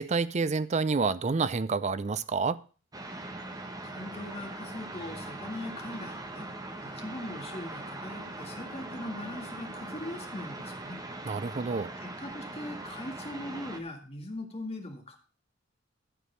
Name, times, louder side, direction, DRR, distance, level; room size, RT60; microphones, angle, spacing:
voice 1, 0.0-2.6 11.2-11.9, right 4 dB, 35° right, 0.5 m, -28 dB
sound 1, 2.9-13.8, right 2 dB, 20° right, 1.1 m, -41 dB
voice 2, 3.8-6.5 6.8-11.0 12.0-15.2, left 1 dB, 35° left, 1.9 m, -40 dB
12.5 x 4.7 x 6.8 m
head